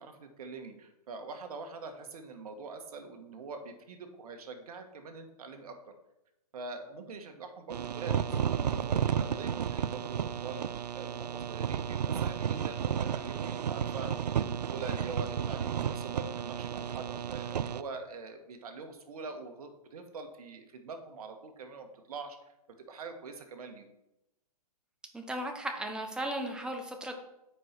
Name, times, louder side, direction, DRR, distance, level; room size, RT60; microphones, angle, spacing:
voice 1, 0.0-5.7 6.5-10.6 10.9-14.1 14.4-22.4 22.9-23.9, right 4 dB, 70° right, 6 dB, 1.4 m, -44 dB
sound 1, 7.7-17.8, right 8 dB, 90° right, 0.4 m, -32 dB
voice 2, 25.1-27.1, right 1 dB, 5° right, 3 dB, 1.0 m, -36 dB
8.8 x 4.8 x 4.5 m, 0.90 s
hypercardioid pair, 125°, 20 cm